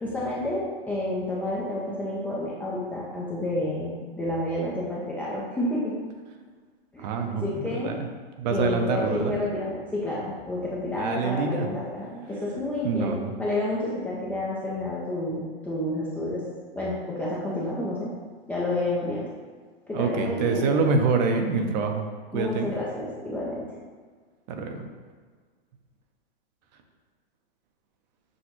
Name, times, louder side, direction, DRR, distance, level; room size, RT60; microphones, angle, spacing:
voice 1, 0.0-5.9 6.9-8.0 8.5-16.5 16.8-18.1 18.5-19.3 19.9-20.7 22.3-23.7, left 1 dB, 5° left, -7 dB, 0.3 m, -30 dB
voice 2, 7.0-8.1 8.4-9.3 10.9-11.7 12.8-13.3 19.9-22.7 24.5-24.9, right 4 dB, 45° right, 4 dB, 0.6 m, -26 dB
6.2 x 2.5 x 3.0 m, 1.5 s
hypercardioid pair, 130°, 30 cm